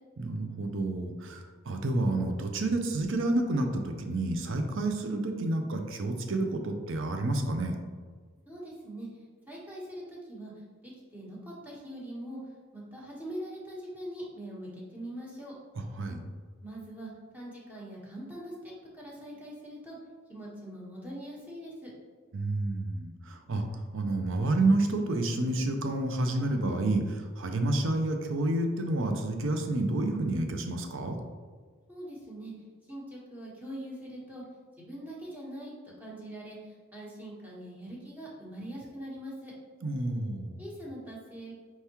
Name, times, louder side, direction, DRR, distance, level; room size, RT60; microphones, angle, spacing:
voice 1, 0.2-7.8 15.8-16.2 22.3-23.6 23.9-31.2 39.8-40.6, right 2 dB, 65° right, 5 dB, 0.5 m, -29 dB
voice 2, 8.5-9.1 9.5-10.5 10.8-12.4 12.7-15.5 16.6-20.0 20.3-21.9 31.9-32.5 32.9-34.4 34.8-39.5 40.6-41.5, right 1 dB, 10° right, -6 dB, 1.0 m, -42 dB
4.5 x 3.5 x 2.9 m, 1.5 s
head